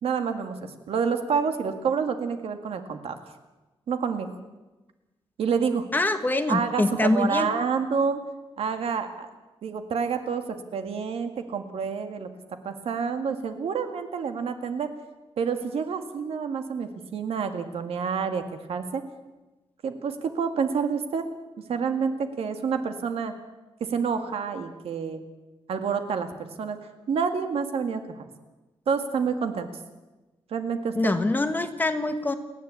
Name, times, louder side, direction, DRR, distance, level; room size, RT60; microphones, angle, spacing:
voice 1, 0.0-3.2 3.9-4.3 5.4-5.9 6.5-8.2 8.6-9.3 9.6-12.3 12.6-14.9 15.4-18.4 18.7-19.0 19.8-21.2 21.7-23.3 23.8-25.2 25.7-26.8 27.1-28.3 28.9-29.7 30.5-31.1, right 6 dB, 80° right, 7 dB, 2.0 m, -28 dB
voice 2, 5.9-7.5 30.9-32.3, left 2 dB, 20° left, 8 dB, 1.4 m, -24 dB
29.5 x 10.5 x 8.5 m, 1.1 s
wide cardioid pair, 155°, 10 cm